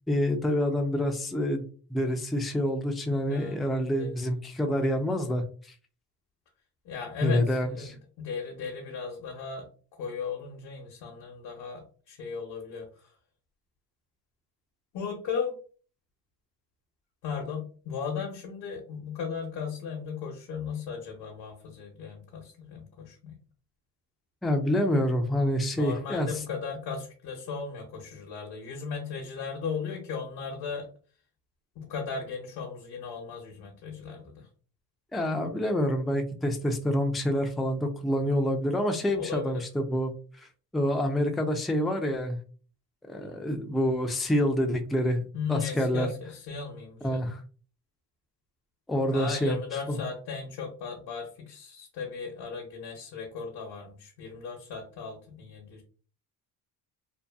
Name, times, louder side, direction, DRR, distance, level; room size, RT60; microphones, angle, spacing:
voice 1, 0.1-1.6 1.9-5.4 7.2-7.9 24.4-26.3 35.1-40.1 40.4-40.5 40.7-42.4 43.1-45.2 45.5-46.1 47.0-47.4 48.9-49.6 49.9-50.0, equal, ahead, 4 dB, 0.3 m, -27 dB
voice 2, 3.3-3.6 4.0-4.1 6.8-9.7 10.0-13.1 14.9-15.5 17.2-23.4 25.7-30.9 31.8-34.5 39.1-39.6 43.2-43.4 45.3-47.2 49.1-55.8, left 6 dB, 75° left, 0 dB, 0.8 m, -36 dB
2.7 x 2.4 x 2.3 m, 0.40 s
supercardioid pair, 80°, 42 cm